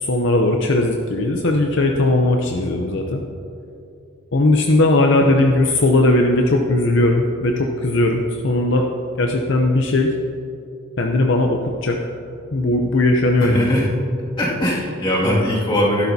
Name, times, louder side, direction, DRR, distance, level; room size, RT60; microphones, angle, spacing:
voice 1, 0.0-3.2 4.3-8.9 9.2-10.1 11.0-12.0 12.5-13.8, left 2 dB, 55° left, 2 dB, 0.6 m, -18 dB
voice 2, 13.4-13.9 14.4-16.1, equal, 25° left, -5 dB, 2.2 m, -20 dB
13.0 x 11.5 x 2.8 m, 2.7 s
head